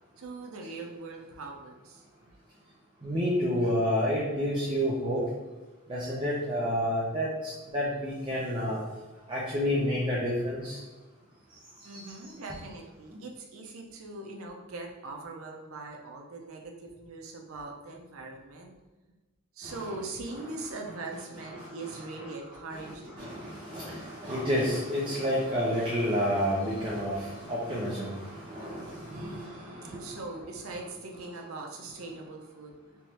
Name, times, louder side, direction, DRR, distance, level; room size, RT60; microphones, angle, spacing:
voice 1, 0.2-2.0 11.8-18.7 19.5-23.3 29.1-32.7, right 3 dB, 75° right, 1 dB, 0.6 m, -41 dB
voice 2, 3.0-5.2 5.9-8.8 9.3-10.8 19.6-19.7 21.6-21.7 22.7-22.8 23.2-30.1, equal, 25° right, -7 dB, 0.6 m, -29 dB
3.4 x 3.1 x 2.9 m, 1.2 s
head